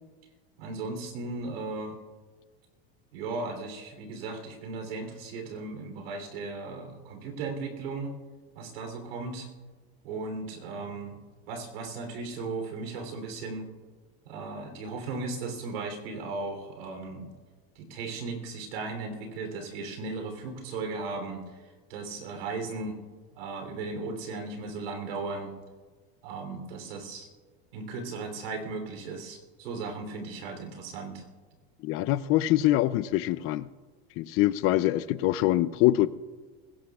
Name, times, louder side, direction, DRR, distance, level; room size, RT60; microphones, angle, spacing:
voice 1, 0.6-1.9 3.1-8.1 8.5-9.5 10.0-11.2 11.5-13.7 14.2-17.3 17.7-21.6 21.9-23.0 23.3-25.5 26.2-27.3 27.7-31.2, right 3 dB, 90° right, 5 dB, 3.4 m, -36 dB
voice 2, 31.8-33.7 34.2-36.1, left 15 dB, 50° left, 17 dB, 0.5 m, -24 dB
21.0 x 16.5 x 2.4 m, 1.4 s
supercardioid pair, 120°, 29 cm